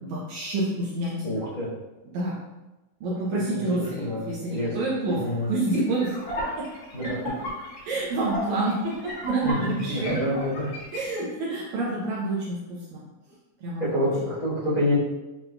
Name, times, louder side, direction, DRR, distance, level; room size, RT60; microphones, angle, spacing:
voice 1, 0.0-1.4 2.0-2.3 3.0-5.2 5.5-6.2 6.5-6.7 7.0-7.3 7.8-10.2 10.9-13.0 13.6-13.8, right 2 dB, 80° right, -5 dB, 1.7 m, -28 dB
voice 2, 1.2-1.7 3.5-4.7 5.0-5.5 6.9-7.3 9.4-10.7 13.8-15.0, left 1 dB, 80° left, -10 dB, 0.7 m, -28 dB
sound 1, 5.1-11.1, equal, 60° left, 2.2 m, -36 dB
7.4 x 2.7 x 2.2 m, 1.1 s
omnidirectional pair, 4.0 m